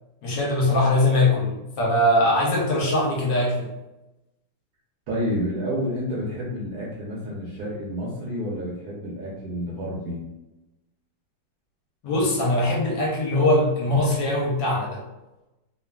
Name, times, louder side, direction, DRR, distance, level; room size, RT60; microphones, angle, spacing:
voice 1, 0.2-3.7 12.0-15.0, left 1 dB, 70° left, -3 dB, 1.3 m, -21 dB
voice 2, 5.1-10.2, equal, 70° right, -5 dB, 0.9 m, -29 dB
3.1 x 2.4 x 2.3 m, 0.97 s
omnidirectional pair, 2.2 m